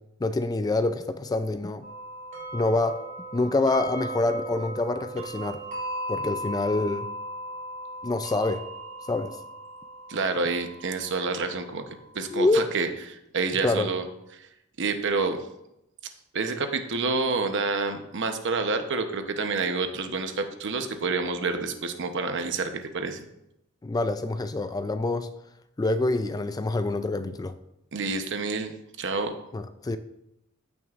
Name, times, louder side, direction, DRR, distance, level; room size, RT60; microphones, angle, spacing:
voice 1, 0.2-1.9 2.5-5.6 6.1-7.1 8.0-8.7 9.1-9.4 12.3-12.7 13.6-13.9 23.8-25.3 25.8-27.5 29.5-30.0, left 2 dB, 20° left, 0.3 m, -26 dB
sound 1, 1.8-12.3, right 1 dB, 35° right, 3.0 m, -37 dB
voice 2, 10.1-11.8 12.1-14.0 14.4-14.5 14.8-15.4 16.3-23.2 27.9-29.3, right 4 dB, 60° right, 0.8 m, -28 dB
15.0 x 6.1 x 2.5 m
head